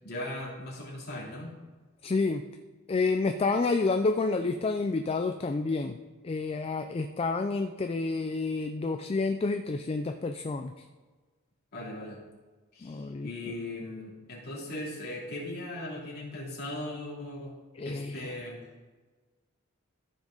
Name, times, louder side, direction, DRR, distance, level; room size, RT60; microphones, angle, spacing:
voice 1, 0.0-1.5 11.7-12.2 12.7-17.5 17.8-18.6, left 1 dB, 45° left, -5 dB, 2.8 m, -38 dB
voice 2, 2.0-2.4 2.9-6.0 6.2-10.9 12.8-13.3 17.8-18.3, left 3 dB, 25° left, 7 dB, 0.3 m, -29 dB
14.0 x 6.1 x 3.8 m, 1.3 s
head